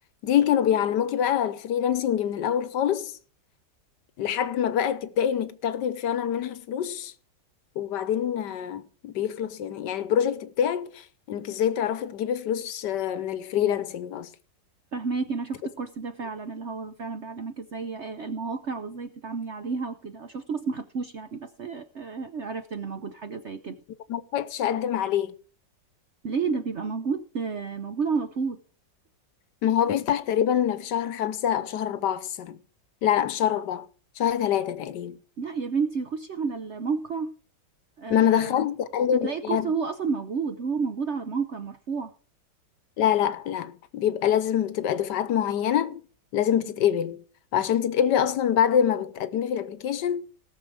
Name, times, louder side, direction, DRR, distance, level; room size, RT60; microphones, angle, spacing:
voice 1, 0.2-3.1 4.2-7.1 7.8-14.3 24.1-25.3 29.6-32.6 33.0-33.9 34.2-35.2 38.1-39.7 43.0-46.0 46.3-47.2 47.5-50.2, left 9 dB, 70° left, 1.3 m, -25 dB
voice 2, 14.9-23.8 26.2-28.6 35.4-37.3 38.0-38.7 39.2-42.1, right 5 dB, 55° right, 0.8 m, -31 dB
18.0 x 6.7 x 4.8 m
omnidirectional pair, 2.0 m